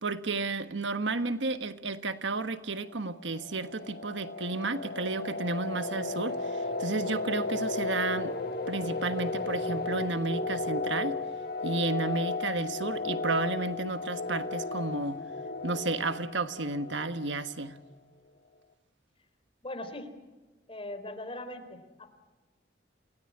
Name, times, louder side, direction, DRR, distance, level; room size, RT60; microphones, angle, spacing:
voice 1, 0.0-8.3 8.7-11.2 11.6-15.2 15.6-17.8, right 3 dB, 80° right, 1.3 m, -32 dB
sound 1, 3.0-17.6, left 3 dB, 60° left, 1.7 m, -34 dB
voice 2, 19.6-20.1 20.7-21.8, left 1 dB, 30° left, 4.0 m, -39 dB
28.0 x 17.5 x 9.8 m
head